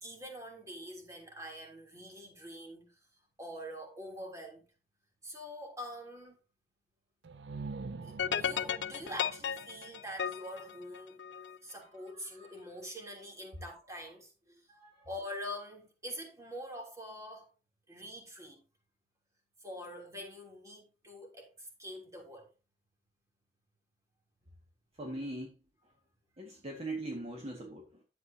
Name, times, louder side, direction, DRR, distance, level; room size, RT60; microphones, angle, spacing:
voice 1, 0.0-2.9 3.4-4.6 5.2-6.4 8.0-11.2 11.6-14.3 15.1-17.5 17.9-18.6 19.6-22.5, equal, 20° right, 3.1 m, -45 dB
sound 1, 7.2-11.0, right 4 dB, 70° right, 0.5 m, -46 dB
sound 2, 8.2-11.6, left 8 dB, 80° left, 0.5 m, -35 dB
voice 2, 11.7-12.6 14.7-15.1 25.0-25.6 25.8-25.9 26.4-28.0, right 2 dB, 35° right, 1.8 m, -42 dB
11.0 x 8.2 x 2.8 m
head